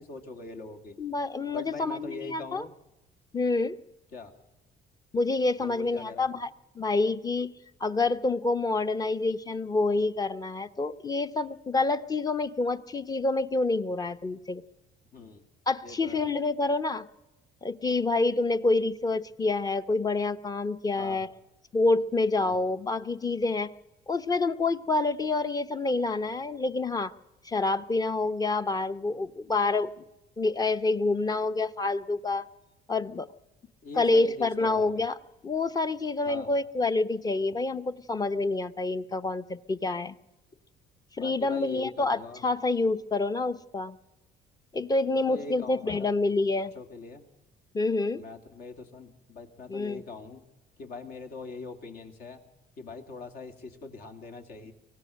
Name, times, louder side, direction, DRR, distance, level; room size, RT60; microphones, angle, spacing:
voice 1, 0.0-1.0 1.5-2.7 4.1-4.3 5.6-6.3 15.1-15.4 15.8-16.3 21.0-21.2 22.4-22.6 33.8-35.1 36.3-36.5 41.2-42.4 45.1-46.1 46.7-47.2 48.2-50.4 50.8-52.4 52.8-54.7, left 3 dB, 65° left, 5 dB, 2.6 m, -42 dB
voice 2, 1.0-2.7 3.3-3.8 5.1-6.5 6.7-7.5 7.8-14.6 15.7-17.1 17.6-21.3 21.7-23.7 24.1-27.1 27.4-29.9 30.4-32.5 32.9-33.3 34.0-35.2 35.4-40.2 41.2-44.0 44.7-46.7 47.7-48.2 49.7-50.0, left 3 dB, 20° left, 11 dB, 0.8 m, -27 dB
24.0 x 18.0 x 6.5 m, 0.99 s
cardioid pair, 110°, 17 cm